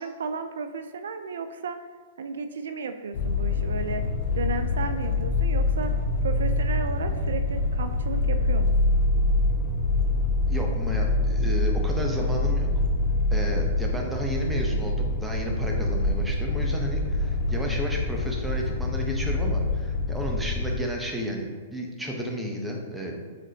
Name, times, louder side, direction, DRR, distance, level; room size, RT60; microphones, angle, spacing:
voice 1, 0.0-1.8 2.2-4.1 4.4-5.9 6.2-8.9, right 5 dB, 75° right, 8 dB, 0.3 m, -34 dB
sound 1, 3.1-20.8, left 2 dB, 50° left, 0.7 m, -25 dB
voice 2, 10.5-12.7 13.3-23.2, equal, 5° right, -1 dB, 0.8 m, -32 dB
4.9 x 3.8 x 2.8 m, 1.5 s
hypercardioid pair, 120°, 0 cm